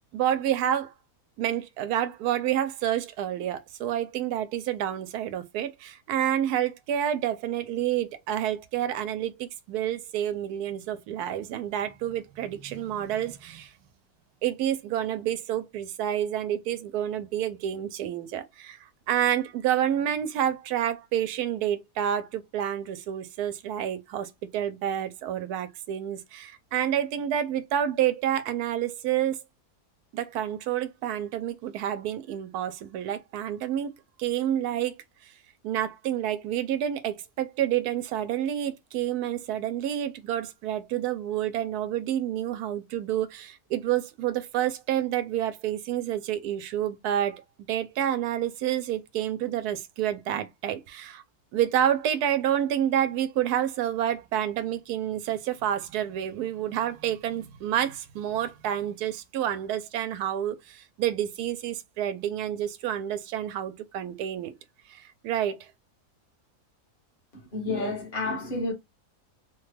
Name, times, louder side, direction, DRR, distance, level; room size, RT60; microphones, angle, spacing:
voice 1, 0.1-0.9 1.4-13.7 14.4-29.4 30.1-33.9 34.2-34.9 35.6-51.2 51.5-64.5 64.9-65.7, right 10 dB, 85° right, 1.1 m, -29 dB
voice 2, 67.3-68.7, left 2 dB, 40° left, 1.2 m, -30 dB
3.1 x 2.2 x 3.2 m
omnidirectional pair, 1.6 m